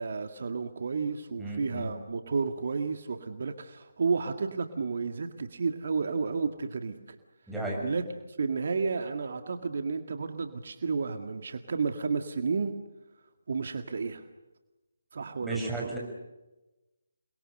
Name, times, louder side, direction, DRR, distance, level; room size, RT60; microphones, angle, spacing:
voice 1, 0.0-7.2 7.8-8.0 8.3-12.7 13.5-14.3 15.1-15.9, right 4 dB, 55° right, 7 dB, 1.9 m, -32 dB
voice 2, 1.4-1.9 7.5-7.8 15.4-16.0, right 2 dB, ahead, -4 dB, 6.8 m, -34 dB
28.5 x 22.0 x 6.6 m, 1.1 s
figure-of-eight pair, 150°, 0 cm